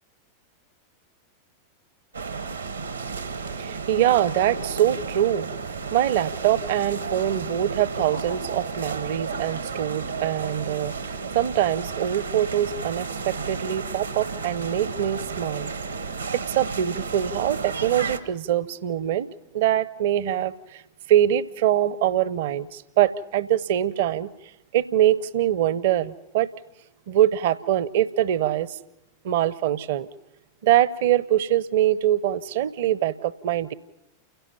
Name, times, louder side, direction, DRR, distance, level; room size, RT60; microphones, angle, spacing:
sound 1, 2.1-18.2, right 4 dB, 80° right, 1.2 m, -33 dB
voice 1, 3.1-15.8 16.3-19.3 19.5-20.8 21.1-24.3 24.7-26.5 27.1-28.8 29.2-30.1 30.6-33.7, right 11 dB, 55° right, 0.7 m, -24 dB
29.5 x 17.0 x 5.6 m
figure-of-eight pair, 90°, 0 cm